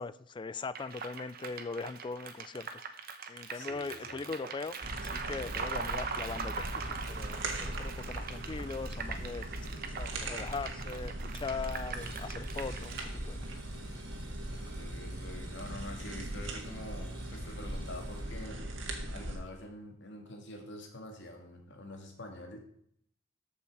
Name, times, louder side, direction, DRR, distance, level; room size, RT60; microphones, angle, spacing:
voice 1, 0.0-2.7 3.3-4.8 5.0-9.4 9.9-13.4, left 4 dB, 25° left, 17 dB, 0.4 m, -40 dB
sound 1, 0.8-13.0, right 5 dB, 50° right, 1.0 m, -41 dB
voice 2, 3.5-4.2 14.7-18.6 19.1-22.6, left 1 dB, 65° left, 3 dB, 2.1 m, -46 dB
sound 2, 4.8-19.4, right 1 dB, 75° right, 1.8 m, -40 dB
sound 3, 11.9-18.5, right 2 dB, 20° right, 2.6 m, -56 dB
13.5 x 5.7 x 4.8 m, 0.67 s
head